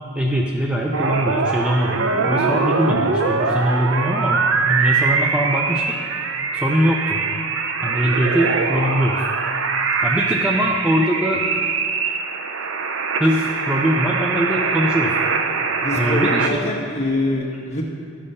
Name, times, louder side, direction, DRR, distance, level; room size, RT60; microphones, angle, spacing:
voice 1, 0.2-2.0 2.3-5.8 6.5-7.2 7.8-9.2 10.0-11.4 13.2-15.1 15.9-16.7, equal, 5° right, -1 dB, 0.5 m, -21 dB
sound 1, 0.9-16.5, right 4 dB, 65° right, 0.6 m, -22 dB
voice 2, 15.8-17.8, left 2 dB, 30° left, -2 dB, 1.4 m, -24 dB
12.5 x 5.4 x 5.5 m, 2.5 s
head